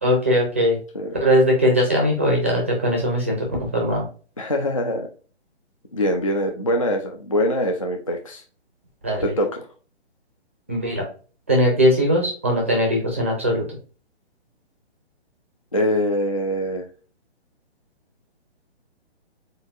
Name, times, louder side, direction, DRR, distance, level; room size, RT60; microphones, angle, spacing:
voice 1, 0.0-0.8 1.2-4.0 9.0-9.3 10.7-11.1 11.5-13.8, equal, 10° right, -1 dB, 0.6 m, -20 dB
voice 2, 4.4-5.1 5.9-8.4 9.2-9.6 15.7-16.9, left 1 dB, 30° left, 3 dB, 0.4 m, -23 dB
7.5 x 2.6 x 2.4 m, 0.38 s
hypercardioid pair, 175°, 34 cm